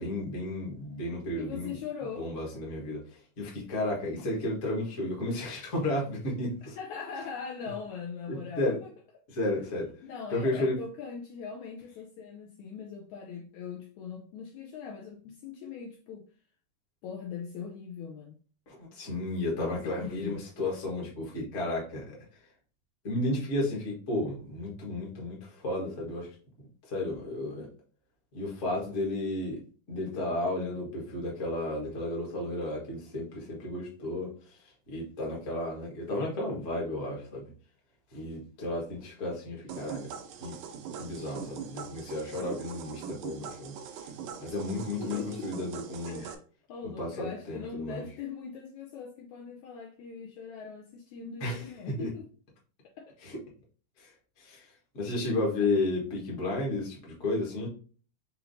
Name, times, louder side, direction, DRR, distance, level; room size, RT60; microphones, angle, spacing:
voice 1, 0.0-1.7 2.2-6.8 8.3-8.8 9.3-9.9 10.3-10.8 18.7-22.0 23.0-25.4 25.6-26.3 26.9-27.7 28.3-29.6 29.9-34.6 34.9-37.5 38.1-40.1 40.4-40.6 41.0-44.1 44.4-46.2 47.0-48.0 51.4-51.6 52.0-52.1 53.2-53.4 54.0-54.1 54.4-54.7 54.9-57.7, left 2 dB, 45° left, 1.0 m, -33 dB
voice 2, 1.4-2.3 5.0-5.4 6.7-8.9 10.0-16.3 17.0-18.4 19.6-20.4 45.0-45.4 46.1-46.4 46.7-52.2 53.0-53.1, left 6 dB, 80° left, 1.8 m, -41 dB
sound 1, 39.7-46.3, right 7 dB, 80° right, 1.6 m, -42 dB
5.6 x 2.9 x 2.7 m
omnidirectional pair, 3.8 m